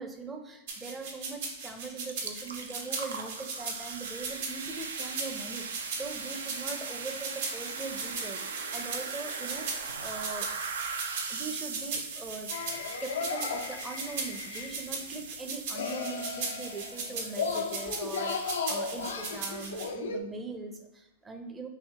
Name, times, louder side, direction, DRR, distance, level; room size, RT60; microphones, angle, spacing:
voice 1, 0.0-10.5 11.3-12.5 13.0-21.7, right 3 dB, 15° right, 4 dB, 0.5 m, -41 dB
sound 1, 0.7-19.9, right 4 dB, 65° right, 0.8 m, -38 dB
sound 2, 1.6-1.7 2.0-19.7, right 5 dB, 80° right, 0.4 m, -40 dB
sound 3, 12.5-15.0 15.7-20.2, left 5 dB, 80° left, 0.3 m, -35 dB
2.8 x 2.7 x 3.5 m, 0.90 s
hypercardioid pair, 105°, 0 cm